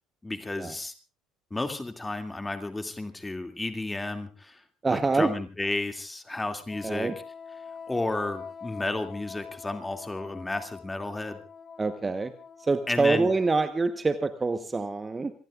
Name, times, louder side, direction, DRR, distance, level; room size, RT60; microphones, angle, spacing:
voice 1, 0.2-0.9 1.5-4.6 4.9-7.1 7.9-11.4 12.9-13.3, left 2 dB, 15° left, 7 dB, 2.4 m, -32 dB
voice 2, 4.8-5.3 6.8-7.1 11.8-12.3 12.6-15.3, right 3 dB, 20° right, 11 dB, 1.1 m, -26 dB
Wind instrument woodwind instrument, 6.7-14.0, left 6 dB, 35° left, 1.0 m, -45 dB
27.0 x 20.0 x 2.5 m, 0.34 s
figure-of-eight pair, 60°, 0 cm